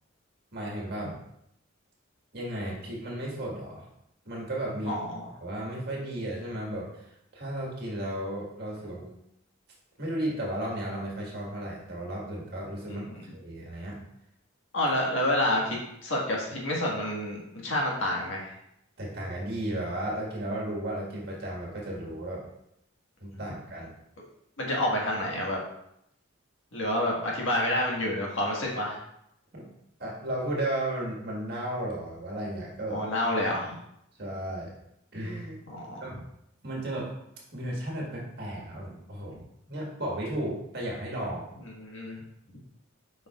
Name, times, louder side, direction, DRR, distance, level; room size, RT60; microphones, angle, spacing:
voice 1, 0.5-1.1 2.3-3.9 4.2-5.0 5.4-9.1 10.0-14.0 19.0-22.4 23.2-23.9 29.5-29.7 30.0-33.1 34.2-34.7 35.1-35.6 36.0-36.1 36.6-37.1 37.5-39.4 39.7-41.5, right 1 dB, 50° right, -3 dB, 1.7 m, -34 dB
voice 2, 4.9-5.2 14.7-18.5 24.6-25.6 26.7-29.0 32.9-33.8 35.7-36.0 41.8-42.2, left 1 dB, 70° left, -2 dB, 1.6 m, -28 dB
7.6 x 5.2 x 2.4 m, 0.78 s
head